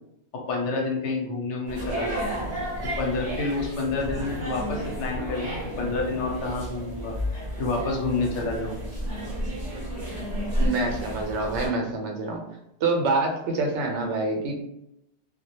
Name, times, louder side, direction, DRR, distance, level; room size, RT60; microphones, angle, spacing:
voice 1, 0.5-2.3 3.0-5.5 5.8-8.8, left 3 dB, 90° left, 0 dB, 0.9 m, -29 dB
sound 1, 1.7-11.7, equal, 35° right, 0.8 m, -31 dB
voice 2, 10.6-12.4 12.8-14.5, right 3 dB, 80° right, 2 dB, 0.9 m, -26 dB
2.1 x 2.1 x 2.8 m, 0.82 s
omnidirectional pair, 1.2 m